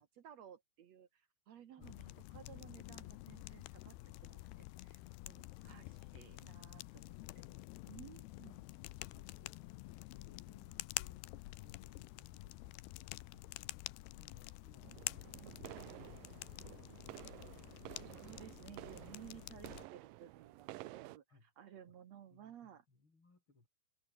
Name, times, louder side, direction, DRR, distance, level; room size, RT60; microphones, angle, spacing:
voice 1, 0.0-4.0 4.2-7.2 7.9-8.7 15.3-15.6 17.9-22.8, right 10 dB, 65° right, 1.8 m, -57 dB
sound 1, 1.8-19.8, left 19 dB, 85° left, 2.8 m, -49 dB
voice 2, 5.7-6.7 9.0-17.0 21.3-21.5 21.9-22.0 22.3-23.7, left 3 dB, 30° left, 5.9 m, -67 dB
sound 2, 14.8-21.2, right 18 dB, 80° right, 2.0 m, -52 dB
omnidirectional pair, 4.6 m